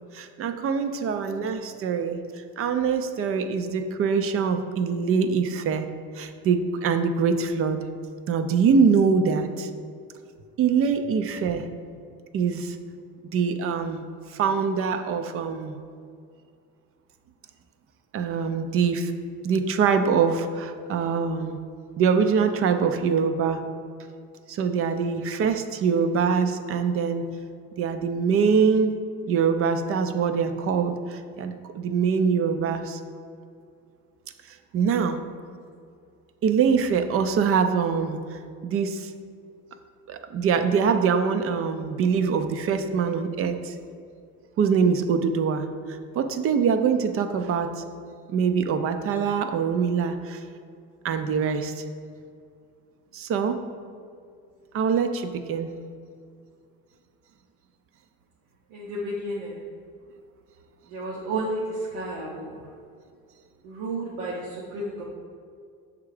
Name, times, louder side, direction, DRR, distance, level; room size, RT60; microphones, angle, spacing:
voice 1, 0.1-2.3 2.6-5.9 6.2-7.8 8.3-9.7 10.6-11.7 12.3-12.8 13.2-14.0 14.3-15.8 18.1-19.1 19.4-21.6 22.0-23.6 24.5-27.3 27.8-29.0 29.3-33.0 34.5-35.2 36.4-38.2 38.6-39.1 40.1-43.7 44.6-47.8 48.3-50.4 51.0-51.8 53.1-53.6 54.7-55.7, right 6 dB, 45° right, 8 dB, 0.6 m, -24 dB
voice 2, 58.7-59.6 60.9-62.5 63.6-65.0, right 1 dB, 85° right, -5 dB, 1.1 m, -32 dB
6.7 x 3.6 x 4.9 m, 2.3 s
supercardioid pair, 100°, 30 cm